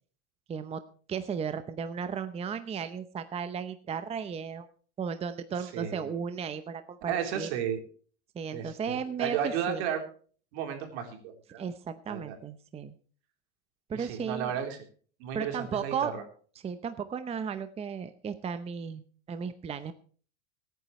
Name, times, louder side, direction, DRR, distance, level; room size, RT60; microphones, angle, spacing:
voice 1, 0.5-0.8 1.1-4.7 5.0-7.5 8.3-9.8 11.6-12.9 13.9-14.5 15.3-16.1 16.6-19.0 19.3-19.9, right 6 dB, 20° right, 11 dB, 0.7 m, -35 dB
voice 2, 5.6-6.1 7.1-7.8 8.5-10.0 10.5-11.6 12.1-12.4 13.9-14.8 15.2-16.2, right 8 dB, 75° right, 4 dB, 3.7 m, -33 dB
23.5 x 9.3 x 3.1 m, 0.43 s
supercardioid pair, 135°, 33 cm